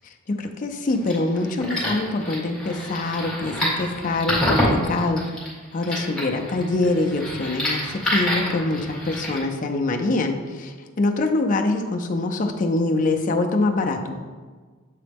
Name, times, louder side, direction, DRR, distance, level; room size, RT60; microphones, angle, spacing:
voice 1, 0.3-5.2 5.7-14.2, left 2 dB, 40° left, 3 dB, 0.5 m, -24 dB
sound 1, 0.9-9.4, left 1 dB, 5° left, 1.7 m, -28 dB
7.5 x 3.9 x 3.5 m, 1.5 s
head